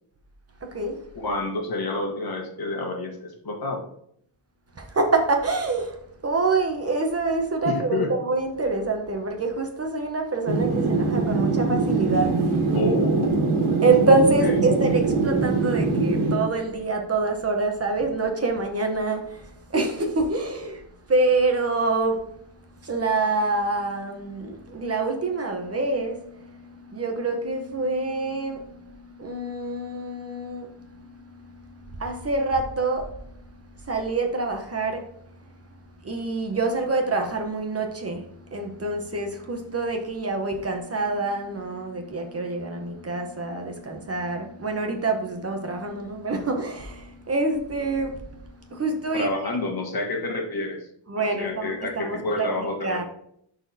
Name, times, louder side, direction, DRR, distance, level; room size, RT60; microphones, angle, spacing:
voice 1, 0.6-1.0 4.8-6.0 6.2-12.7 13.8-20.8 21.1-22.2 22.8-33.2 33.8-35.1 36.0-38.2 38.5-48.2 48.6-49.4 51.1-53.0, right 3 dB, 30° right, 4 dB, 0.9 m, -26 dB
voice 2, 1.1-3.9 7.6-8.1 12.7-13.5 14.4-14.6 49.1-50.8 51.4-53.0, left 2 dB, 50° left, 2 dB, 1.5 m, -29 dB
sound 1, 10.5-16.4, right 3 dB, 85° right, 1.6 m, -22 dB
10.5 x 4.1 x 2.7 m, 0.69 s
cardioid pair, 125°, 48 cm